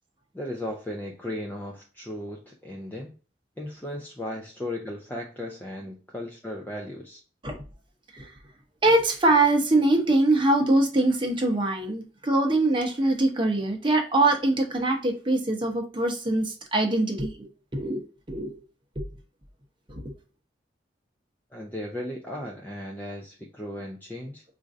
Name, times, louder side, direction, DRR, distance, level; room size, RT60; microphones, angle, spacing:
voice 1, 0.3-3.1 3.6-7.2 21.5-24.4, left 1 dB, 10° left, 0 dB, 0.4 m, -36 dB
voice 2, 8.8-17.5 17.7-18.6 19.0-19.1 19.9-20.0, right 2 dB, 25° right, 2 dB, 0.8 m, -23 dB
4.4 x 2.6 x 2.4 m, 0.36 s
head